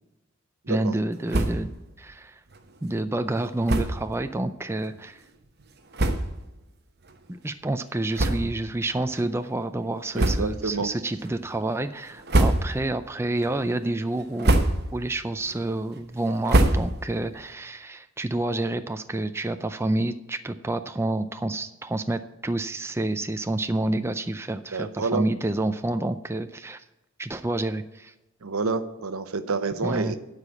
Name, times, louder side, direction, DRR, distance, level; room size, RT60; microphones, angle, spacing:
voice 1, 0.7-2.4 2.8-5.2 7.4-14.6 14.9-26.8 27.2-28.1 29.8-30.2, right 2 dB, 10° right, 9 dB, 0.4 m, -28 dB
sound 1, 1.3-1.8 2.1-2.2 2.5-2.6 3.6-4.1 4.8-4.9 5.6-5.7 5.9-6.5 7.0-7.2 8.1-8.8 9.1-9.3 10.1-10.7 11.2-11.6 12.1-13.0 13.4-13.8 14.2-15.0 15.4-17.2, right 1 dB, 50° right, 0.9 m, -25 dB
voice 2, 10.2-10.9 24.7-25.2 28.4-30.2, right 4 dB, 85° right, 11 dB, 0.9 m, -28 dB
12.5 x 5.0 x 8.4 m, 0.99 s
head